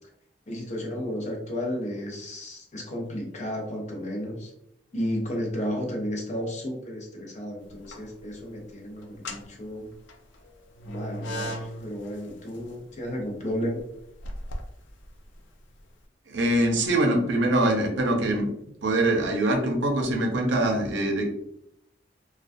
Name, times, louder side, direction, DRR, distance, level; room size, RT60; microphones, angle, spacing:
voice 1, 0.5-4.5 4.9-9.9 10.8-13.8, equal, 40° left, -1 dB, 0.6 m, -33 dB
sound 1, 7.6-8.3 9.0-15.9, equal, 90° left, 0.4 m, -39 dB
voice 2, 16.3-18.5 18.8-21.3, right 1 dB, 85° right, 2 dB, 0.6 m, -23 dB
2.2 x 2.2 x 2.5 m, 0.75 s
head